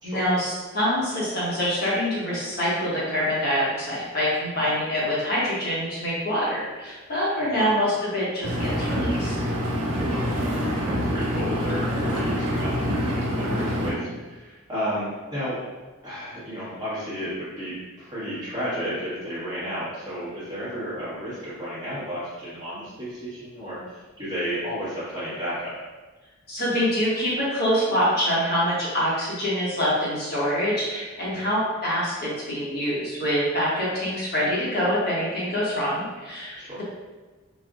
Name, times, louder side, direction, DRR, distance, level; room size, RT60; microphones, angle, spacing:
voice 1, 0.0-9.3 13.4-13.6 26.5-36.8, equal, 45° left, -7 dB, 1.2 m, -25 dB
voice 2, 7.4-7.7 10.0-10.5 10.8-12.8 13.3-15.6 16.0-25.7 31.3-31.5 33.8-33.9 36.6-36.8, equal, 20° right, -11 dB, 1.2 m, -32 dB
Engine, 8.4-13.9, equal, 85° right, 1.2 m, -26 dB
4.2 x 2.4 x 2.4 m, 1.2 s
head